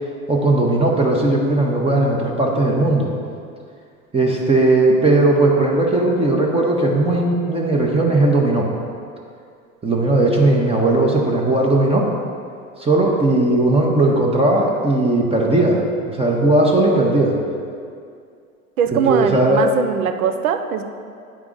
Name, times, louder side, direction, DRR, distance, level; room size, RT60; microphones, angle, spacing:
voice 1, 0.3-3.1 4.1-8.7 9.8-12.1 12.8-17.4 19.1-19.6, right 2 dB, 15° right, -1 dB, 0.8 m, -17 dB
voice 2, 18.8-20.8, right 7 dB, 75° right, 8 dB, 0.7 m, -21 dB
8.7 x 4.8 x 3.7 m, 2.3 s
hypercardioid pair, 90°, 42 cm